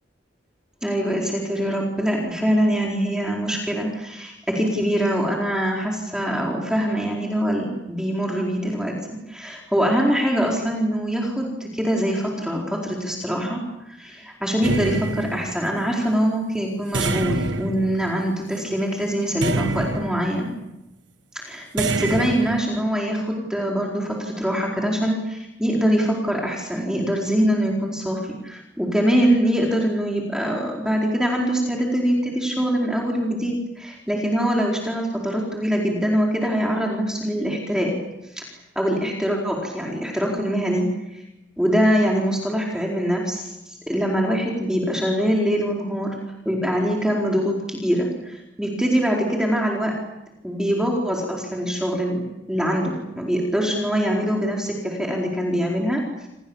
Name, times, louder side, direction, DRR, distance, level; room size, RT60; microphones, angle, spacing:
voice 1, 0.8-13.6 13.9-20.5 21.3-37.9 38.3-41.2 41.6-46.2 46.4-49.9 50.4-56.0, equal, 5° right, -2 dB, 4.4 m, -23 dB
sound 1, 14.6-15.9 16.9-18.6 19.4-20.6 21.8-22.6, right 2 dB, 75° right, 1.5 m, -27 dB
29.5 x 28.0 x 7.3 m, 0.91 s
head